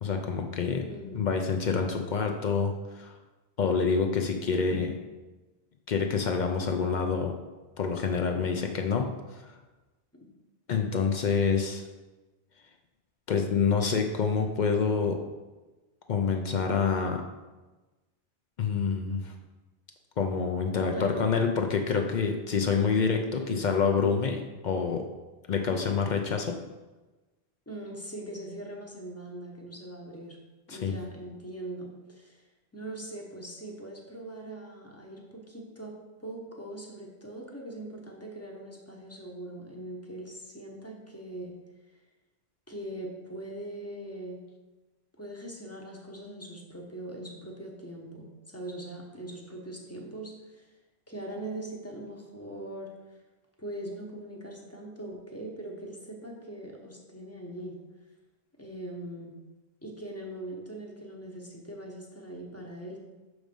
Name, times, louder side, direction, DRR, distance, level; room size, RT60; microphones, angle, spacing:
voice 1, 0.0-0.9 1.1-3.1 3.6-5.0 5.9-7.3 7.8-9.6 10.7-11.8 13.3-15.2 16.1-17.2 18.6-19.3 20.2-25.0 25.5-26.6 30.7-31.0, left 5 dB, 55° left, 4 dB, 0.6 m, -27 dB
voice 2, 0.9-1.3 20.9-21.3 23.3-23.6 27.7-30.4 30.7-32.4 32.7-35.9 36.2-41.6 42.7-44.4 45.2-50.6 51.1-52.9 53.6-57.8 58.6-59.4 59.8-63.0, right 1 dB, 15° left, 0 dB, 0.9 m, -41 dB
6.2 x 3.2 x 5.2 m, 1.2 s
omnidirectional pair, 1.1 m